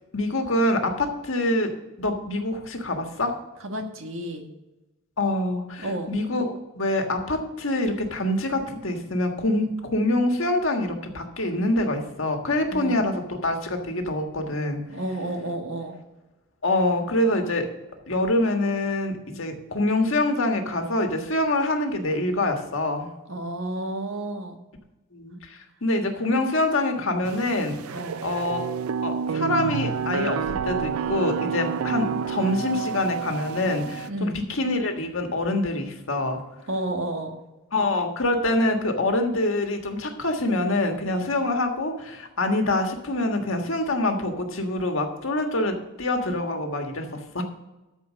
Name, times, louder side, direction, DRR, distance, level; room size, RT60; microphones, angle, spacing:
voice 1, 0.1-1.7 2.0-3.4 5.2-14.8 16.6-17.7 18.1-23.1 25.1-27.8 28.2-28.6 29.0-30.4 30.6-36.4 37.7-47.4, left 1 dB, 65° left, 4 dB, 1.6 m, -25 dB
voice 2, 3.6-4.5 5.8-6.1 12.7-13.0 14.9-16.0 23.3-24.6 27.9-28.3 34.1-34.4 36.7-37.4, right 1 dB, 65° right, 5 dB, 1.5 m, -31 dB
sound 1, 27.2-34.1, right 6 dB, 85° right, 0.4 m, -29 dB
13.5 x 4.8 x 6.4 m, 1.0 s
head